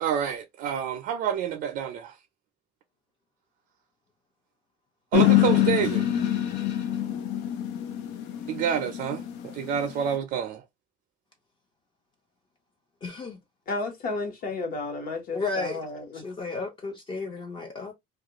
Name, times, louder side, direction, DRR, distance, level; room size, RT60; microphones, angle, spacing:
voice 1, 0.0-2.2 5.1-6.0 8.5-10.6, right 8 dB, 55° right, 0.4 m, -28 dB
sound 1, 5.1-10.1, left 13 dB, 85° left, 0.5 m, -25 dB
voice 2, 13.0-13.4 15.3-15.9 16.1-17.9, left 3 dB, 25° left, 0.5 m, -33 dB
voice 3, 13.7-16.2, left 3 dB, 55° left, 1.0 m, -32 dB
2.4 x 2.3 x 2.8 m
cardioid pair, 170°, 18 cm